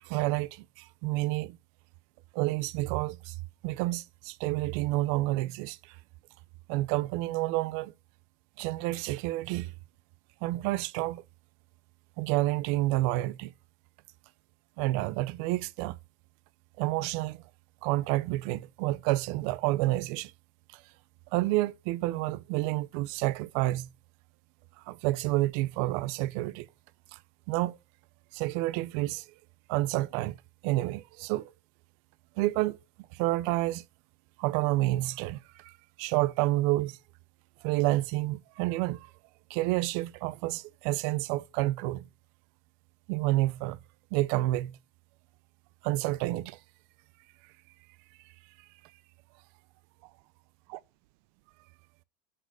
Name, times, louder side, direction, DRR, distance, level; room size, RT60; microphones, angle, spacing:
voice 1, 0.0-1.6 2.3-3.3 3.6-6.0 6.7-7.9 8.6-9.7 10.4-11.2 12.2-13.5 14.8-16.0 16.8-17.4 17.8-20.3 21.3-23.9 24.9-26.7 27.1-27.2 27.5-27.8 28.3-29.3 29.7-30.4 30.6-31.5 32.4-32.8 33.1-33.8 34.4-37.0 37.6-39.1 39.5-42.0 43.1-43.8 44.1-44.8 45.8-46.6 50.7-50.8, right 18 dB, 65° right, 0.6 m, -29 dB
7.6 x 4.1 x 6.3 m
supercardioid pair, 135°, 20 cm